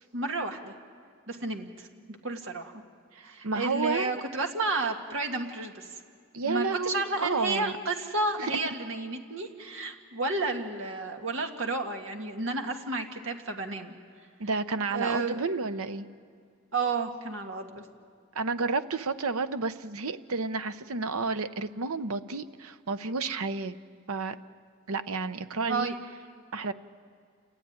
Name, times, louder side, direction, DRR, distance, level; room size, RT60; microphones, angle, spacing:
voice 1, 0.1-0.7 1.3-2.7 3.2-6.0 6.4-13.9 14.9-15.4 16.7-17.8 25.7-26.0, right 3 dB, 60° right, 3 dB, 1.9 m, -32 dB
voice 2, 3.1-4.1 6.3-7.7 8.4-8.6 14.4-16.1 18.3-23.7 24.1-24.4 24.9-25.9 26.5-26.7, right 4 dB, 80° right, 11 dB, 0.9 m, -31 dB
28.5 x 13.5 x 9.6 m, 2.1 s
head